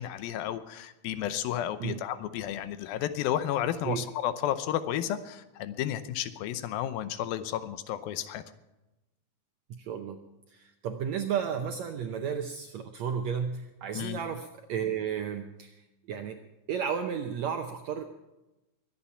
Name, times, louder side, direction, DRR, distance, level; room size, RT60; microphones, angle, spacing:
voice 1, 0.0-8.4 13.9-14.2, left 11 dB, 85° left, 12 dB, 2.6 m, -32 dB
voice 2, 9.8-10.2 10.5-15.8 16.1-16.4 16.7-18.1, right 7 dB, 75° right, 5 dB, 1.6 m, -33 dB
22.5 x 8.6 x 5.8 m, 1.0 s
omnidirectional pair, 4.1 m